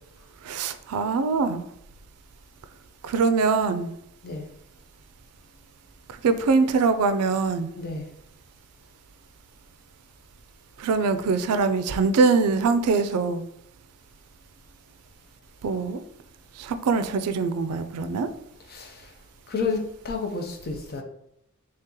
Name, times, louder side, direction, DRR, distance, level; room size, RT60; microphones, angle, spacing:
voice 1, 0.4-1.6 3.0-3.9 6.2-7.7 10.8-13.4 15.6-16.0 16.6-18.3, right 4 dB, 90° right, 10 dB, 0.4 m, -23 dB
voice 2, 7.8-8.1 18.7-19.1 19.5-21.0, left 4 dB, 45° left, 2 dB, 0.6 m, -30 dB
3.2 x 2.8 x 3.7 m, 0.77 s
head